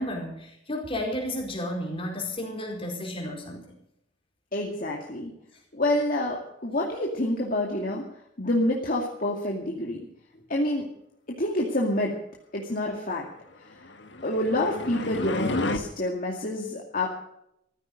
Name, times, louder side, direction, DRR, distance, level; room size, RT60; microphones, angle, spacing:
voice 1, 0.0-3.7, left 1 dB, 30° left, 1 dB, 4.6 m, -32 dB
voice 2, 4.5-5.3 5.7-8.0 8.4-10.0 10.5-10.9 11.4-12.1 12.5-13.3 14.2-17.1, left 1 dB, 45° left, -1 dB, 2.4 m, -27 dB
sound 1, 13.8-15.8, left 2 dB, 65° left, 1.7 m, -31 dB
15.0 x 14.5 x 5.3 m, 0.77 s
head